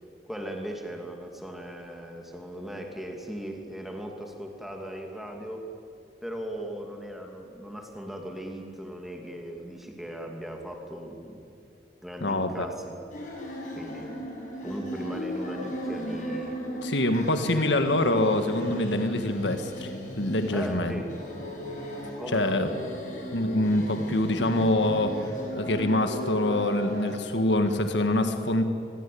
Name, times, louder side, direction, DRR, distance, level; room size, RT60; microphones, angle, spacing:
voice 1, 0.3-5.7 6.2-11.5 12.0-13.0 13.7-14.2 14.6-16.7 17.5-17.7 20.5-21.1 22.2-22.6, equal, ahead, 2 dB, 2.7 m, -38 dB
voice 2, 12.2-12.7 16.8-21.0 22.3-22.7 23.3-28.6, left 1 dB, 85° left, 7 dB, 1.8 m, -25 dB
sound 1, 13.1-27.1, equal, 45° left, 7.4 m, -36 dB
25.5 x 21.5 x 8.7 m, 2.5 s
head